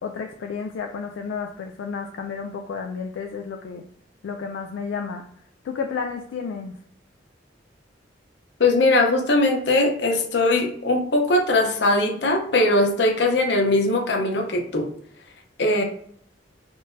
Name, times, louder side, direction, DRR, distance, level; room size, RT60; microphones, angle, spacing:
voice 1, 0.0-3.8 4.2-5.2 5.6-6.8, left 5 dB, 85° left, 4 dB, 0.3 m, -31 dB
voice 2, 8.6-14.9 15.6-15.8, left 2 dB, 65° left, 2 dB, 0.7 m, -20 dB
3.7 x 2.6 x 2.5 m, 0.66 s
head